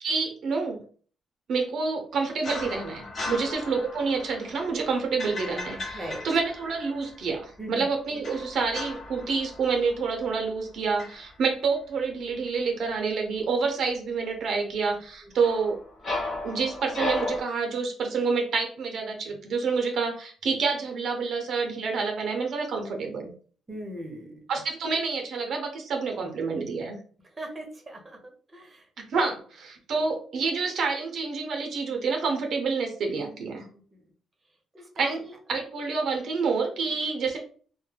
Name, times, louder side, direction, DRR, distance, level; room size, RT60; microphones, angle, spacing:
voice 1, 0.0-0.8 1.5-15.8 16.4-23.3 24.5-27.0 29.1-33.6 35.0-35.2 35.5-37.4, right 4 dB, 65° right, 3 dB, 0.6 m, -28 dB
sound 1, 2.4-7.3 8.2-10.7 11.0-11.3 15.4-17.4, left 2 dB, 45° left, 0.9 m, -36 dB
voice 2, 23.7-24.3 27.4-28.2 28.5-28.8 34.7-35.3, right 1 dB, 20° right, 2 dB, 0.8 m, -38 dB
2.1 x 2.1 x 3.3 m, 0.43 s
cardioid pair, 90°, 0 cm